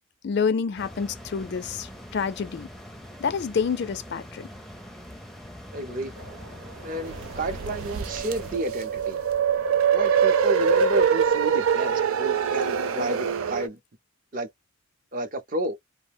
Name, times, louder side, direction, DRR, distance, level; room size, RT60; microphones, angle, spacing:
voice 1, 0.2-2.7 3.2-4.5, left 6 dB, 55° left, 0.4 m, -28 dB
sound 1, 0.8-8.6, equal, ahead, 0.5 m, -43 dB
voice 2, 5.7-6.1 6.8-9.2 9.9-13.8 14.3-14.5 15.1-15.8, right 1 dB, 40° right, 0.6 m, -31 dB
sound 2, 6.1-11.5, right 2 dB, 65° right, 0.9 m, -45 dB
sound 3, 7.1-13.7, right 7 dB, 90° right, 0.4 m, -24 dB
2.5 x 2.1 x 3.3 m
head